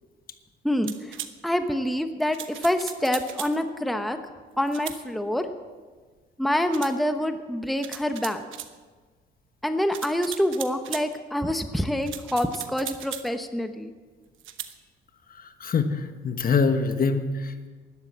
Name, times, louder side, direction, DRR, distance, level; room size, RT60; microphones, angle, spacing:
voice 1, 0.6-1.2 1.4-4.2 4.6-5.5 6.4-8.4 9.6-13.9, left 1 dB, ahead, 7 dB, 0.9 m, -26 dB
sound 1, 0.9-1.3 2.3-3.6 4.7-5.0 6.7-7.0 7.8-8.7 9.9-11.1 12.0-13.3 14.4-14.7, right 11 dB, 80° right, 1.0 m, -38 dB
voice 2, 15.4-17.7, left 4 dB, 45° left, 8 dB, 1.3 m, -25 dB
12.0 x 12.0 x 7.4 m, 1.4 s
cardioid pair, 90°, 20 cm